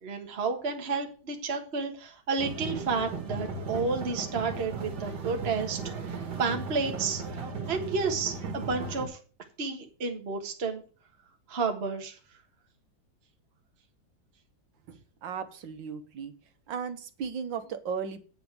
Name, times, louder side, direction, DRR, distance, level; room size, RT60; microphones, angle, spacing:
voice 1, 0.0-5.8 6.1-7.2 7.7-9.2 9.6-10.8 11.5-12.2, right 4 dB, 35° right, 3 dB, 1.6 m, -31 dB
sound 1, 2.4-9.1, right 4 dB, 60° right, 2.3 m, -36 dB
voice 2, 14.9-16.3 16.7-18.2, right 6 dB, 80° right, 9 dB, 1.9 m, -36 dB
8.9 x 5.8 x 8.0 m, 0.38 s
omnidirectional pair, 2.0 m